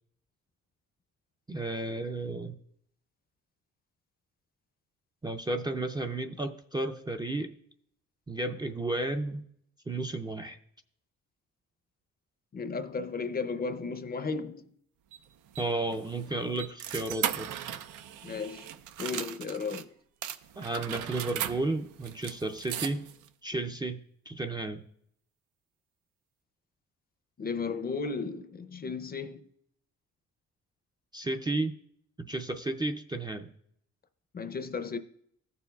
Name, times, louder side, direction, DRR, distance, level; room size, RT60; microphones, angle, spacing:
voice 1, 1.5-2.6 5.2-7.6 8.3-9.4 9.9-10.6 15.6-17.5 20.6-23.1 23.4-24.0 24.3-24.8 31.1-31.7 32.2-33.5, right 2 dB, 15° right, 0.4 m, -33 dB
voice 2, 12.5-14.7 18.2-18.7 19.0-19.9 27.4-29.5 34.3-35.0, left 4 dB, 30° left, 0.6 m, -34 dB
sound 1, 15.1-19.8 20.2-23.3, right 10 dB, 90° right, 0.5 m, -38 dB
14.5 x 6.9 x 2.3 m
cardioid pair, 90°, 30 cm